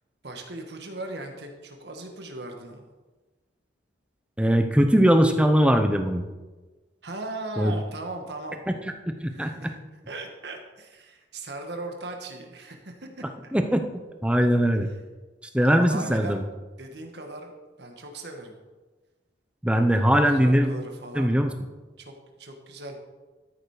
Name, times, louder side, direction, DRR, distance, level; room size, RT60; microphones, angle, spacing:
voice 1, 0.2-2.9 7.0-8.6 9.3-9.7 10.1-13.1 13.4-13.5 15.6-16.5 16.8-17.5 17.8-18.6 20.3-21.4 22.0-22.1 22.4-23.0, right 2 dB, 65° right, 4 dB, 1.6 m, -38 dB
voice 2, 4.4-6.2 7.6-7.7 8.7-8.8 9.1-9.7 13.5-13.8 14.2-14.9 15.5-16.4 19.6-20.7 21.1-21.5, equal, 5° right, 6 dB, 0.7 m, -21 dB
13.0 x 7.2 x 5.0 m, 1.2 s
head